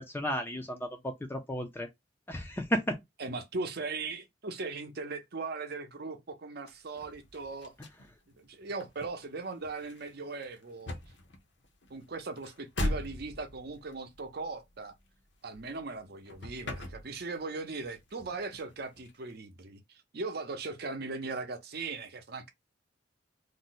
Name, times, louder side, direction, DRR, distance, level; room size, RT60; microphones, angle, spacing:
voice 1, 0.0-1.9 2.3-3.0, equal, 10° left, 0.4 m, -33 dB
voice 2, 3.2-7.7 8.4-10.9 11.9-14.9 15.4-22.5, right 3 dB, 55° right, 0.6 m, -39 dB
sound 1, 6.7-16.0 16.3-17.5 17.8-19.3, left 1 dB, 70° left, 0.7 m, -41 dB
2.6 x 2.1 x 3.9 m
head